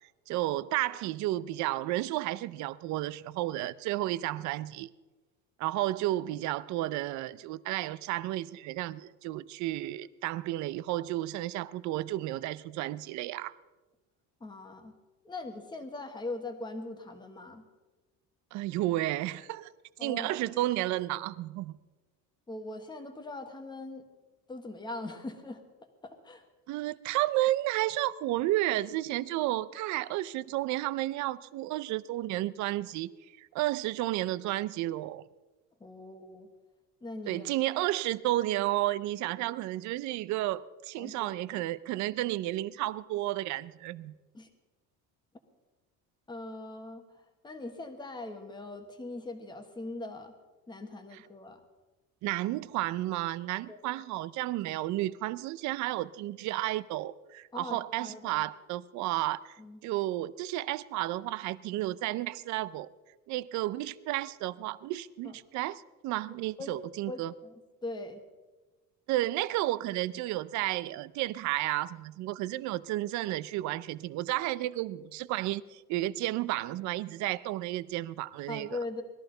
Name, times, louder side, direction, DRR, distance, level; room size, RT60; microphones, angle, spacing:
voice 1, 0.3-4.9 5.6-13.5 18.5-19.7 20.0-21.7 26.7-33.1 33.4-35.2 37.3-44.1 52.2-59.6 59.8-62.9 63.3-67.3 69.1-78.8, right 16 dB, 55° right, 0.5 m, -32 dB
voice 2, 14.4-15.0 15.2-17.7 20.0-20.4 22.5-24.1 24.5-25.6 26.0-26.4 35.8-36.5 37.0-37.5 41.0-41.4 44.3-44.5 46.3-50.3 50.7-51.6 53.7-53.8 57.5-58.4 59.6-59.8 65.2-65.4 66.6-66.7 67.1-67.5 67.8-68.2 78.5-79.0, left 2 dB, 15° left, 1.2 m, -41 dB
20.0 x 13.5 x 3.9 m
cardioid pair, 170°, 34 cm